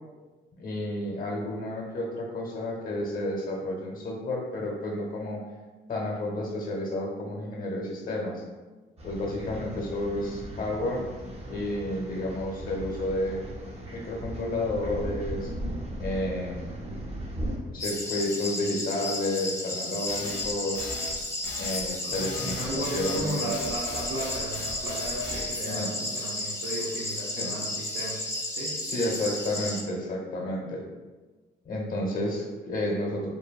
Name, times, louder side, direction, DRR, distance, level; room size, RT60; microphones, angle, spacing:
voice 1, 0.6-5.4 5.9-8.4 9.0-11.0 11.5-13.4 13.9-15.5 16.0-16.7 17.6-20.8 21.6-23.5 25.6-25.9 27.4-27.5 28.8-30.8 31.6-33.3, left 1 dB, 45° left, -1 dB, 0.8 m, -31 dB
sound 1, 9.0-17.6, equal, 30° right, 0.6 m, -37 dB
sound 2, 17.8-29.8, left 2 dB, 15° left, 0.4 m, -33 dB
sound 3, 20.1-25.5, left 4 dB, 65° left, 0.4 m, -38 dB
voice 2, 22.0-28.2 28.5-28.8, right 1 dB, 70° right, -6 dB, 0.6 m, -35 dB
2.9 x 2.2 x 2.3 m, 1.3 s
cardioid pair, 90°, 20 cm